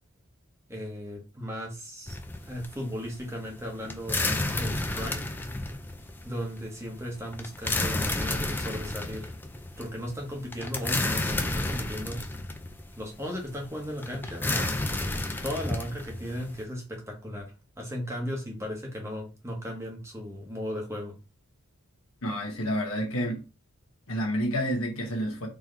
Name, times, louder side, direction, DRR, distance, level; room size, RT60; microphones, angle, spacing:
voice 1, 0.7-2.2 2.4-5.2 6.2-9.3 9.8-12.2 13.0-14.8 15.4-21.1, equal, 15° right, 1.0 m, -36 dB
sound 1, 2.1-16.6, left 2 dB, 10° left, 0.3 m, -31 dB
voice 2, 22.2-23.4 24.1-25.5, equal, 70° left, 1.2 m, -29 dB
3.8 x 3.0 x 3.2 m
head